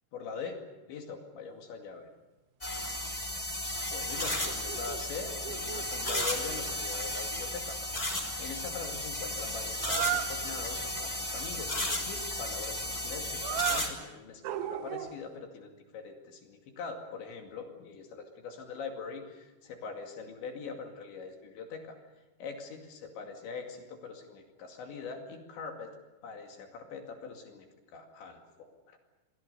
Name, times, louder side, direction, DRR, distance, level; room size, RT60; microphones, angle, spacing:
voice 1, 0.1-0.6 0.9-2.1 3.9-22.0 22.4-25.9 26.2-27.7 27.9-29.0, left 5 dB, 70° left, 3 dB, 4.5 m, -43 dB
sound 1, 2.6-13.9, left 1 dB, 10° left, 2.8 m, -34 dB
sound 2, 3.4-3.5 3.7-3.8 4.1-5.0 5.4-6.3 9.8-10.4 13.4-13.9 14.4-15.3, right 13 dB, 75° right, 3.5 m, -35 dB
28.5 x 22.5 x 6.9 m, 1.1 s
omnidirectional pair, 5.6 m